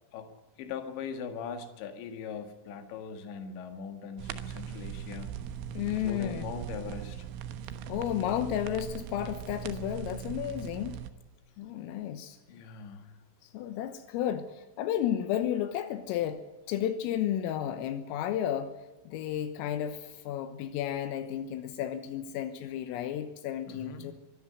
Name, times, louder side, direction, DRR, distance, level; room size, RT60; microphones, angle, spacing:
voice 1, 0.6-5.3 5.9-7.3 12.5-13.2 23.7-24.1, left 6 dB, 65° left, 6 dB, 3.9 m, -40 dB
sound 1, 4.2-11.1, right 9 dB, 75° right, 3.6 m, -40 dB
voice 2, 5.7-6.5 7.9-11.0 11.6-12.4 13.4-16.4 16.7-18.7 19.1-24.1, left 11 dB, 85° left, 8 dB, 3.7 m, -32 dB
24.0 x 13.5 x 9.2 m, 1.2 s
omnidirectional pair, 5.9 m